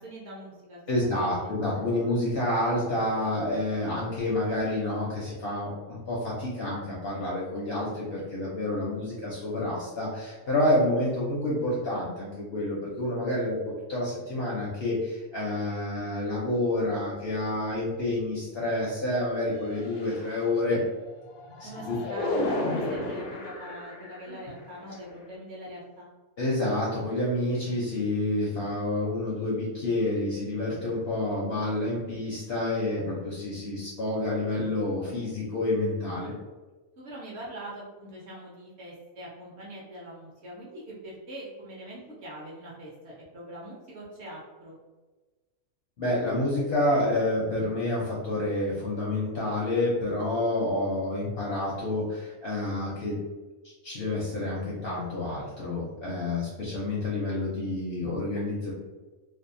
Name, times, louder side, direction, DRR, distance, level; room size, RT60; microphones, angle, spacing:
voice 1, 0.0-1.6 21.6-26.1 37.0-44.8, right 1 dB, 60° right, -5 dB, 0.8 m, -43 dB
voice 2, 0.9-20.8 21.6-21.9 24.3-24.4 26.4-36.3 46.0-53.2 53.6-58.7, left 1 dB, 60° left, -5 dB, 0.6 m, -29 dB
sound 1, 19.6-20.6 21.2-24.3 24.8-25.1, left 2 dB, 85° left, 1.1 m, -32 dB
2.6 x 2.2 x 2.5 m, 1.2 s
omnidirectional pair, 1.5 m